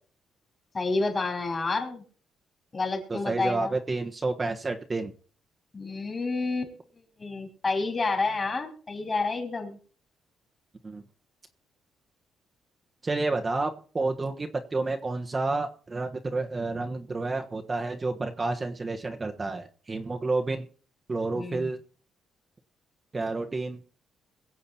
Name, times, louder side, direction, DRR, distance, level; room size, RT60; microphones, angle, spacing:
voice 1, 0.7-2.0 2.7-3.8 5.7-6.7 7.2-9.8 21.3-21.7, left 3 dB, 30° left, 5 dB, 4.6 m, -29 dB
voice 2, 3.1-5.1 10.8-11.0 13.0-20.7 21.1-21.8 23.1-23.8, right 3 dB, 25° right, 4 dB, 1.3 m, -30 dB
23.0 x 7.8 x 4.3 m, 0.43 s
cardioid pair, 90°, 0 cm